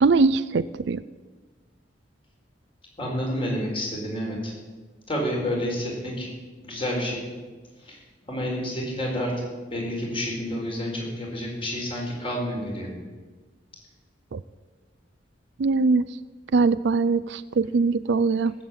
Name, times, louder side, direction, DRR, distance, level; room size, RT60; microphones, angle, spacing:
voice 1, 0.0-1.0 14.3-14.4 15.6-16.1 16.5-18.5, right 4 dB, 65° right, 14 dB, 0.4 m, -21 dB
voice 2, 3.0-4.5 5.1-6.3 6.6-7.2 7.8-8.0 8.3-9.3 9.7-12.9, equal, 30° left, -1 dB, 4.4 m, -29 dB
17.5 x 7.9 x 8.8 m, 1.3 s
head